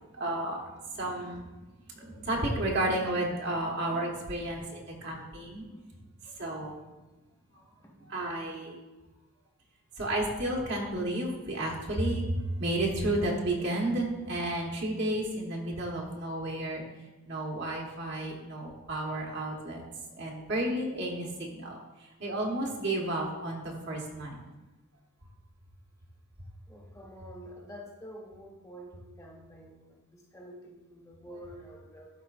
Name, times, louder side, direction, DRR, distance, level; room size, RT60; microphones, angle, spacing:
voice 1, 0.2-1.5 1.9-5.6 6.4-6.8 8.0-8.8 10.0-16.8 17.2-19.8 20.1-21.8 22.2-24.4, right 1 dB, 50° right, -2 dB, 1.1 m, -32 dB
voice 2, 26.7-32.1, equal, 15° left, -2 dB, 1.1 m, -48 dB
12.5 x 4.4 x 2.5 m, 1.1 s
head